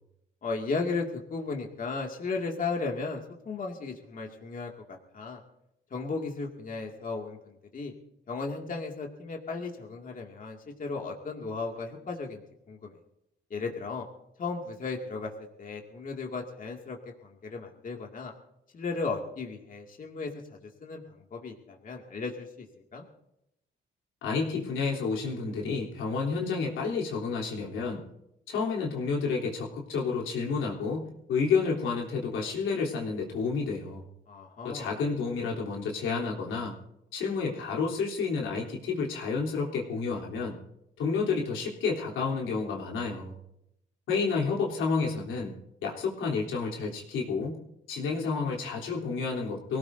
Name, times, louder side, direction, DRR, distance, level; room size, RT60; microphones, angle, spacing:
voice 1, 0.4-5.4 5.9-7.9 8.3-13.0 13.5-14.1 14.4-15.3 15.6-18.3 18.7-21.0 21.3-22.7 22.9-23.1 34.3-34.9, left 4 dB, 45° left, 0 dB, 2.3 m, -35 dB
voice 2, 24.2-28.0 28.5-34.0 34.6-36.8 37.1-40.6 41.0-43.3 44.1-45.6 45.8-47.6 47.9-49.8, left 5 dB, 85° left, -1 dB, 3.3 m, -30 dB
24.0 x 17.0 x 2.7 m, 0.82 s
cardioid pair, 90°, 20 cm